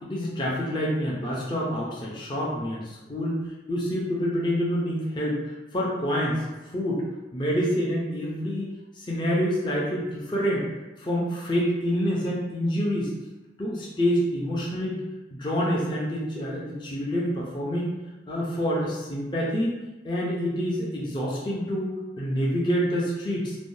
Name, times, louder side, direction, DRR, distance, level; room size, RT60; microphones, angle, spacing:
voice 1, 0.0-5.4 5.7-6.4 6.7-7.0 7.3-8.7 9.0-10.7 11.0-13.1 13.6-15.0 15.3-18.0 18.3-19.7 20.0-23.6, equal, 25° left, -5 dB, 0.5 m, -27 dB
3.4 x 2.1 x 2.6 m, 1.0 s
head